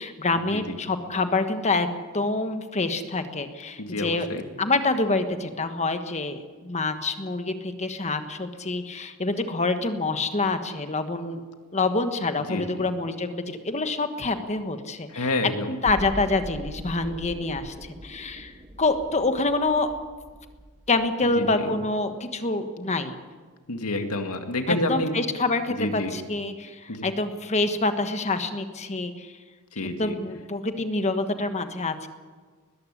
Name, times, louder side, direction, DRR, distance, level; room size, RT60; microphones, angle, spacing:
voice 1, 0.0-4.3 4.6-11.4 11.7-19.9 20.9-23.2 24.7-29.4 29.8-32.1, left 3 dB, 30° left, 8 dB, 1.3 m, -27 dB
voice 2, 3.8-4.4 12.5-12.7 15.1-15.7 21.3-21.7 23.7-25.1 25.8-26.1 26.9-27.0 29.7-30.1, left 2 dB, 80° left, 5 dB, 2.2 m, -28 dB
sound 1, 15.8-21.8 22.1-22.2, right 1 dB, 20° right, 1.1 m, -41 dB
20.5 x 14.5 x 9.9 m, 1.5 s
head